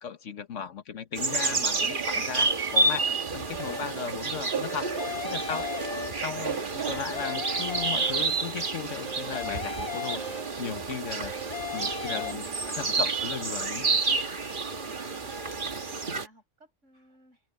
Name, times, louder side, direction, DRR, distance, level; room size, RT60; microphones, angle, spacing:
voice 1, 0.0-4.9 5.2-5.7 6.2-12.5 12.7-13.9, left 7 dB, 80° left, 1.5 m, -36 dB
sound 1, 1.1-16.3, right 3 dB, 45° right, 1.5 m, -30 dB
sound 2, 3.6-4.2 4.7-6.5 6.9-8.7 9.0-10.8 11.2-12.3, left 5 dB, 30° left, 1.9 m, -37 dB
voice 2, 11.7-14.2 14.6-17.4, right 1 dB, 80° right, 6.9 m, -53 dB
omnidirectional pair, 1.3 m